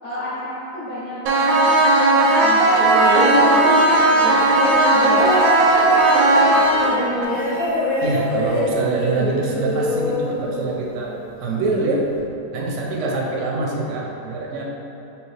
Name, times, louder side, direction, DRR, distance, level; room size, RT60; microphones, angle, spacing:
voice 1, 0.0-1.9 2.3-2.9 3.9-5.3 5.6-7.3, left 1 dB, 70° left, -8 dB, 0.7 m, -30 dB
sound 1, 1.3-7.3, right 2 dB, 85° right, 1.3 m, -16 dB
sound 2, 2.8-11.1 12.2-12.3, left 1 dB, 85° left, 2.2 m, -24 dB
voice 2, 8.0-11.1 11.4-12.1 12.5-14.6, right 2 dB, 70° right, -2 dB, 0.7 m, -24 dB
4.5 x 2.9 x 3.2 m, 2.9 s
omnidirectional pair, 1.9 m